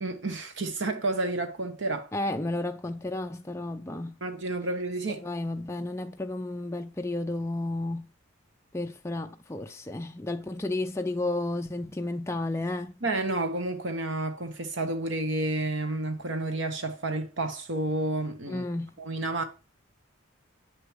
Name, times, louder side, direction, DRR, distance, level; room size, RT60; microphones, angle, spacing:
voice 1, 0.0-2.1 4.2-5.2 13.0-18.6 19.0-19.4, right 2 dB, 60° right, 1.1 m, -30 dB
voice 2, 2.1-4.2 5.2-8.1 8.7-12.9 18.5-19.0, left 2 dB, 15° left, 0.4 m, -32 dB
8.2 x 6.7 x 3.1 m
head